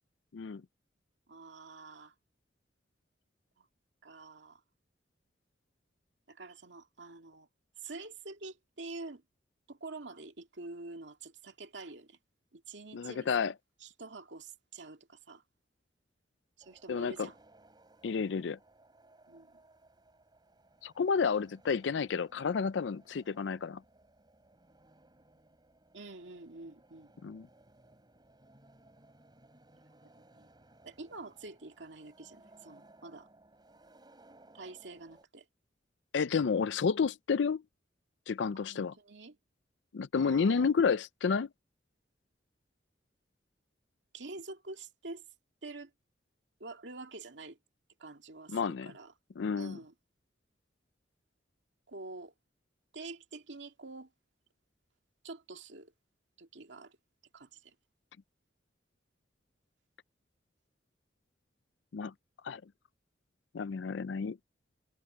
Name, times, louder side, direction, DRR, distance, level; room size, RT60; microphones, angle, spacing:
voice 1, 1.3-2.1 3.6-3.7 4.0-4.6 6.3-7.5 7.8-9.2 9.7-12.2 12.5-13.5 13.8-15.4 16.6-17.4 19.3-19.6 25.9-27.1 29.7-30.5 30.8-33.3 34.5-35.5 38.7-39.4 40.1-40.7 44.1-45.2 45.6-45.9 46.6-47.6 48.0-49.1 49.6-49.9 51.9-52.3 52.9-54.1 55.2-55.9 56.4-57.0 57.3-57.7, right 3 dB, 75° right, 2.4 m, -47 dB
voice 2, 12.9-13.5 16.9-17.3 18.0-18.6 20.8-23.8 27.2-27.5 36.1-37.6 38.3-38.9 39.9-41.5 48.5-48.9 49.4-49.8 61.9-62.1 62.4-62.6 63.5-64.4, left 5 dB, 75° left, 0.4 m, -30 dB
sound 1, 16.6-35.3, right 2 dB, 25° right, 4.8 m, -62 dB
head